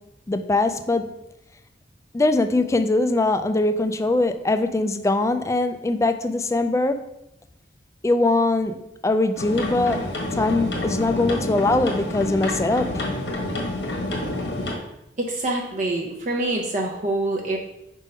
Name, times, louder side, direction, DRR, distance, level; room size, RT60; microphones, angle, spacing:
voice 1, 0.3-1.0 2.1-7.0 8.0-8.8 9.0-10.0 10.4-13.0, left 2 dB, 15° left, 8 dB, 0.3 m, -21 dB
sound 1, 9.4-14.7, left 1 dB, 85° left, 1.5 m, -28 dB
voice 2, 15.2-17.6, right 2 dB, 45° right, 0 dB, 0.7 m, -25 dB
5.2 x 3.6 x 5.4 m, 0.86 s
head